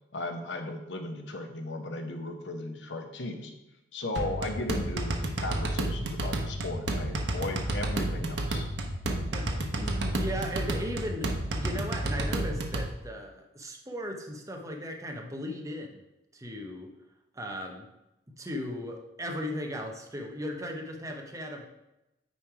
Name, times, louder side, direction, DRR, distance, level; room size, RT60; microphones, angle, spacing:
voice 1, 0.1-3.5 3.9-8.7, left 2 dB, 80° left, 5 dB, 0.9 m, -36 dB
sound 1, 4.2-12.9, right 1 dB, 75° right, 0.9 m, -31 dB
voice 2, 9.1-16.0 16.3-16.9 17.3-17.9 18.4-21.7, equal, 20° right, 2 dB, 0.7 m, -37 dB
9.1 x 3.3 x 4.7 m, 0.91 s
head